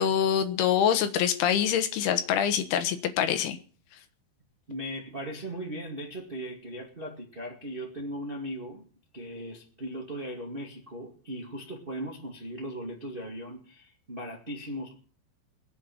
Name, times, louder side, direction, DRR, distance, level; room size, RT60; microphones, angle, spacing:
voice 1, 0.0-3.6, left 9 dB, 70° left, 9 dB, 2.8 m, -25 dB
voice 2, 4.7-8.9 9.1-14.9, equal, 60° right, 0 dB, 0.5 m, -38 dB
22.0 x 8.0 x 5.9 m, 0.44 s
omnidirectional pair, 5.4 m